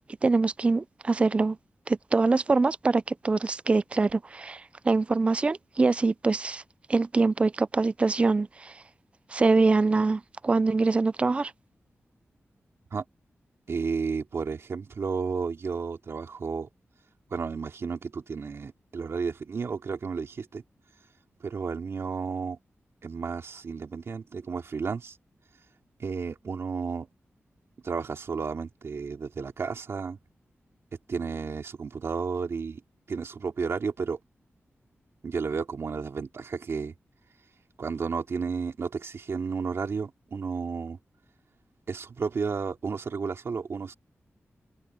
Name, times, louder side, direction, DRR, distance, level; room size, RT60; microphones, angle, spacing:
voice 1, 0.2-1.6 1.9-6.6 6.9-8.8 9.3-11.5, right 3 dB, 25° right, 0.3 m, -24 dB
voice 2, 13.7-16.7 17.3-20.6 21.4-22.6 23.0-25.2 26.0-27.1 27.8-30.2 31.1-32.8 33.1-34.2 35.2-36.9 37.8-41.0 41.9-43.9, right 5 dB, 65° right, 2.9 m, -32 dB
open air
wide cardioid pair, 155°, 5 cm